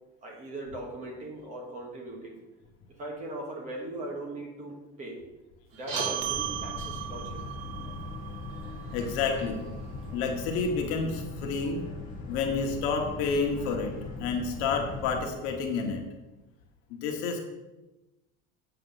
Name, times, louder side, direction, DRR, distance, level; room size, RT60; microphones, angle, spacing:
voice 1, 0.2-2.4 3.0-5.2 5.7-7.4, right 1 dB, 25° right, 0 dB, 1.4 m, -39 dB
sound 1, 5.7-10.6, right 2 dB, 60° right, 2.4 m, -43 dB
sound 2, 6.0-10.7, right 11 dB, 80° right, 0.7 m, -38 dB
Boat Water vehicle, 6.2-15.2, left 3 dB, 30° left, 1.0 m, -40 dB
voice 2, 8.9-9.6 10.1-11.8 12.3-13.9 14.2-16.0 16.9-17.4, left 4 dB, 50° left, 2 dB, 1.3 m, -29 dB
7.9 x 6.9 x 3.9 m, 1.0 s
cardioid pair, 180°, 29 cm